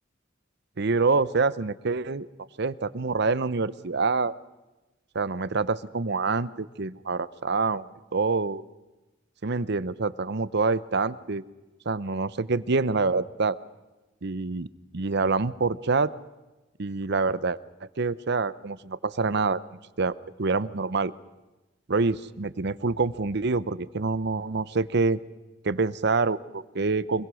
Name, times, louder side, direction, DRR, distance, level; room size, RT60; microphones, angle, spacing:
voice 1, 0.8-2.3 2.6-4.3 5.1-7.8 8.1-8.6 9.4-11.4 11.9-13.6 14.2-14.7 14.9-16.1 16.8-17.6 18.0-19.6 20.0-21.1 21.9-25.2 25.6-27.3, right 4 dB, 60° right, 16 dB, 0.8 m, -26 dB
25.0 x 22.0 x 6.3 m, 1.1 s
head